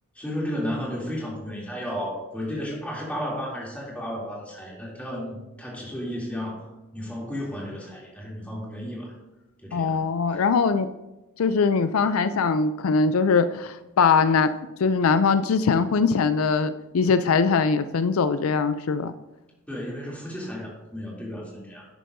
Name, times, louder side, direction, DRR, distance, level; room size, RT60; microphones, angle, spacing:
voice 1, 0.1-9.2 9.6-10.1 10.3-10.4 19.7-21.9, equal, 5° left, -5 dB, 2.8 m, -33 dB
voice 2, 9.7-10.9 11.4-14.5 14.8-19.1, left 5 dB, 80° left, 12 dB, 0.4 m, -21 dB
11.0 x 10.0 x 2.7 m, 1.0 s
head